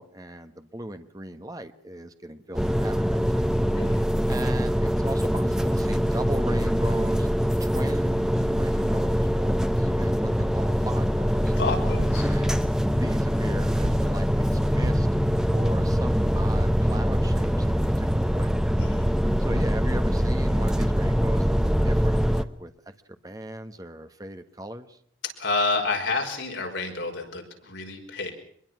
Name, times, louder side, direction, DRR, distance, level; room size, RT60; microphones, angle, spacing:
voice 1, 0.0-3.5 4.3-7.3 7.6-11.6 12.2-12.6 13.0-15.1 15.5-18.5 19.4-22.7 23.1-25.0, right 1 dB, 20° right, 8 dB, 1.4 m, -37 dB
sound 1, 2.5-22.4, equal, 5° right, 0.8 m, -23 dB
sound 2, 10.4-10.7 11.8-12.4 13.8-14.2 14.8-15.2 19.2-19.3 19.5-19.9, equal, 85° right, 3.9 m, -33 dB
voice 2, 11.6-12.3 18.8-19.2 25.4-28.3, left 3 dB, 70° left, 3 dB, 5.4 m, -29 dB
24.5 x 22.0 x 6.2 m, 0.66 s
head